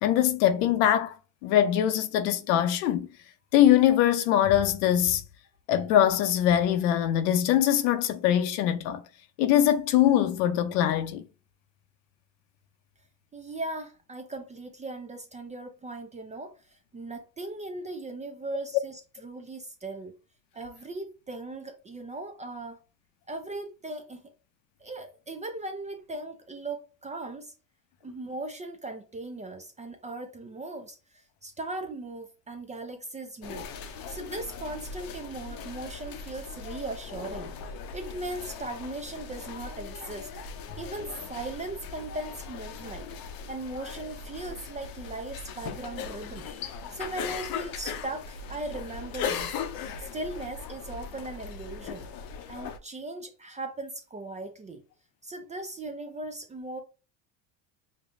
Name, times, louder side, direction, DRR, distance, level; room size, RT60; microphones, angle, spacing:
voice 1, 0.0-1.2 1.4-3.1 3.5-5.2 5.7-9.0 9.4-11.2, left 11 dB, 85° left, 0.7 m, -22 dB
voice 2, 13.3-20.2 20.5-22.8 23.3-24.3 24.8-27.5 28.0-33.7 34.1-40.3 40.8-49.5 50.0-52.1 52.5-54.8 55.2-56.8, right 2 dB, 15° right, 0.3 m, -38 dB
sound 1, 33.4-52.8, left 6 dB, 45° left, 0.6 m, -39 dB
5.1 x 2.2 x 2.5 m
supercardioid pair, 100°, 49 cm